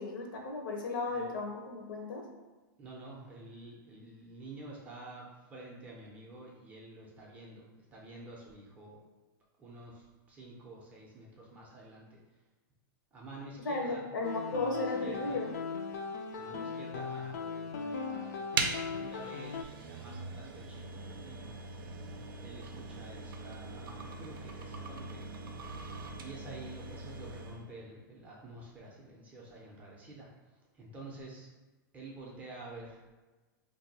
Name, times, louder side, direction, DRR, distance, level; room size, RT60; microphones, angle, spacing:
voice 1, 0.0-2.2 13.6-15.5 16.5-16.6, left 3 dB, 70° left, 1 dB, 0.7 m, -35 dB
voice 2, 2.8-9.0 9.6-12.2 13.1-14.0 14.5-15.4 16.4-18.5 18.7-21.5 22.4-25.2 26.2-30.3 30.7-31.5 31.9-33.0, right 2 dB, 15° right, -3 dB, 0.5 m, -49 dB
sound 1, 14.2-19.6, left 5 dB, 50° left, 0.4 m, -38 dB
sound 2, 18.5-27.7, right 4 dB, 90° right, 0.5 m, -41 dB
2.5 x 2.2 x 4.0 m, 1.2 s
supercardioid pair, 160°, 11 cm